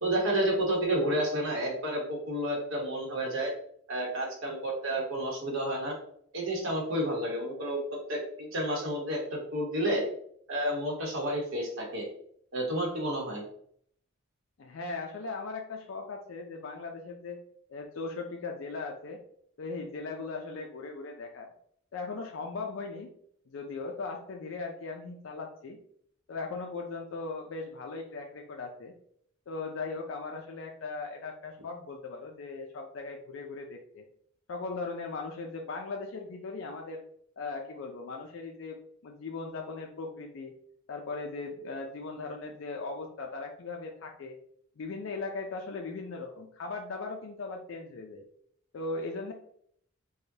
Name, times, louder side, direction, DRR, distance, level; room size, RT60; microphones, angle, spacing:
voice 1, 0.0-3.5 3.9-6.0 6.3-7.8 8.1-10.0 10.5-12.1 12.5-13.4, right 1 dB, 75° right, -1 dB, 1.0 m, -30 dB
voice 2, 14.6-17.4 17.7-19.2 19.6-21.5 21.9-23.1 23.5-25.8 26.3-28.9 29.5-34.0 34.5-37.0 37.4-38.8 39.0-40.5 40.9-44.4 44.8-48.2 48.7-49.3, left 3 dB, 70° left, 2 dB, 0.4 m, -38 dB
4.8 x 2.2 x 2.7 m, 0.66 s
head